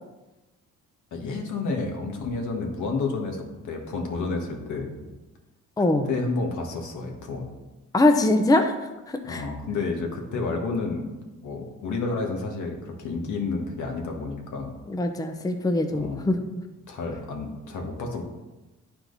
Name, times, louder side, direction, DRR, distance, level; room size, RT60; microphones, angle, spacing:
voice 1, 1.1-5.1 6.0-7.5 9.2-11.1 11.4-14.7 15.9-16.3 16.9-18.2, left 3 dB, 75° left, 2 dB, 1.7 m, -30 dB
voice 2, 5.8-6.1 7.9-8.7 9.1-9.4 14.9-16.4, left 2 dB, 10° left, 6 dB, 0.7 m, -22 dB
9.8 x 4.5 x 4.0 m, 1.1 s
cardioid pair, 90°, 30 cm